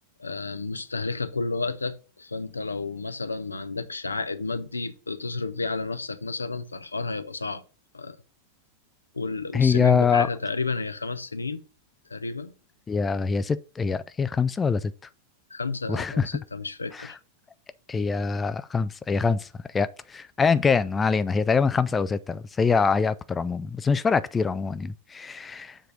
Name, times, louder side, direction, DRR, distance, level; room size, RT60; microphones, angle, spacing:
voice 1, 0.2-7.6 7.9-8.2 9.1-11.6 12.1-12.5 15.5-17.2, left 3 dB, 80° left, 0.6 m, -31 dB
voice 2, 9.5-10.3 12.9-14.9 15.9-16.4 16.9-17.2 17.9-25.8, left 5 dB, 15° left, 0.3 m, -24 dB
7.3 x 3.3 x 6.3 m
figure-of-eight pair, 90°, 0 cm